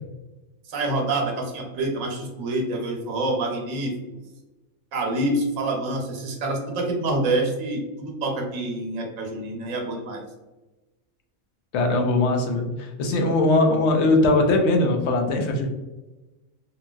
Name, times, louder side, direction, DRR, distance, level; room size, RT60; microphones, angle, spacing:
voice 1, 0.7-3.9 4.9-10.2, right 2 dB, 85° right, 0 dB, 1.1 m, -27 dB
voice 2, 11.7-15.7, left 2 dB, 65° left, 3 dB, 0.8 m, -20 dB
2.7 x 2.7 x 2.2 m, 1.1 s
omnidirectional pair, 1.3 m